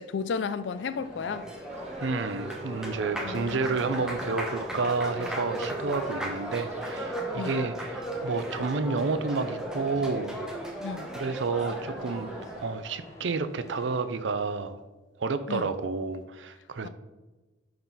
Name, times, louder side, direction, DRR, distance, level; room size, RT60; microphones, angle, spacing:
voice 1, 0.0-1.5 3.2-3.8 7.3-7.6 10.8-11.1 15.5-15.7 16.8-16.9, left 5 dB, 75° left, 0.4 m, -33 dB
sound 1, 0.6-14.0, left 1 dB, 15° left, 1.1 m, -50 dB
Applause, 0.9-12.7, right 1 dB, 5° right, 0.8 m, -36 dB
sound 2, 1.7-7.0, right 3 dB, 35° right, 0.6 m, -49 dB
voice 2, 2.0-10.4 11.2-12.3 12.6-14.8 15.2-16.9, right 4 dB, 80° right, 0.5 m, -30 dB
10.5 x 3.9 x 4.0 m
head